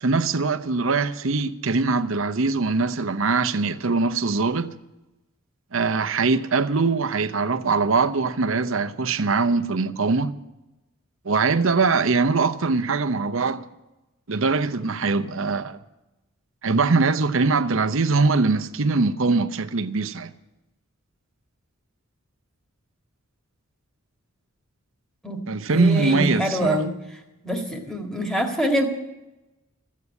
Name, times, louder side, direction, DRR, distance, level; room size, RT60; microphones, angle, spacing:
voice 1, 0.0-4.7 5.7-10.3 11.2-13.6 14.3-15.8 16.6-20.3 25.5-26.8, right 4 dB, 60° right, 0.8 m, -22 dB
voice 2, 25.7-26.9 27.4-28.9, equal, 5° left, 1.8 m, -25 dB
14.0 x 8.4 x 9.6 m
head